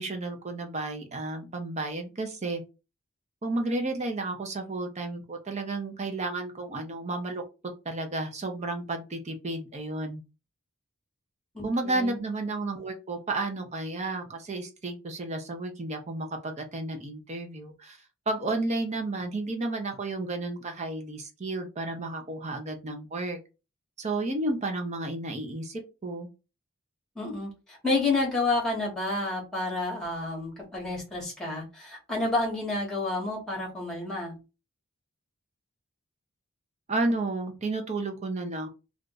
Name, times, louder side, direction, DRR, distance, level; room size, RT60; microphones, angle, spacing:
voice 1, 0.0-2.6 3.4-7.4 7.8-10.2 11.6-18.0 18.3-23.4 24.0-26.3 36.9-38.7, right 2 dB, 30° right, 4 dB, 0.6 m, -32 dB
voice 2, 11.5-12.2 27.1-34.3, left 2 dB, 5° left, -2 dB, 1.1 m, -30 dB
2.5 x 2.3 x 3.8 m, 0.30 s
head